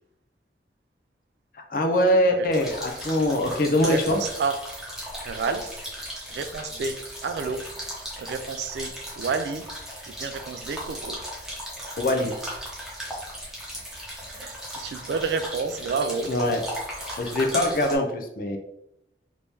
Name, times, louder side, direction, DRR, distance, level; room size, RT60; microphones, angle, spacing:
voice 1, 1.7-4.2 12.0-12.3 16.3-16.6 17.2-18.6, left 1 dB, 50° left, 4 dB, 0.5 m, -23 dB
sound 1, 2.5-18.0, equal, ahead, 0.8 m, -37 dB
voice 2, 3.8-4.6 5.3-5.8 6.3-7.0 7.2-7.6 8.2-9.7 10.1-11.2 14.4-16.3, right 4 dB, 75° right, 8 dB, 0.3 m, -30 dB
3.1 x 2.7 x 3.4 m, 0.81 s
head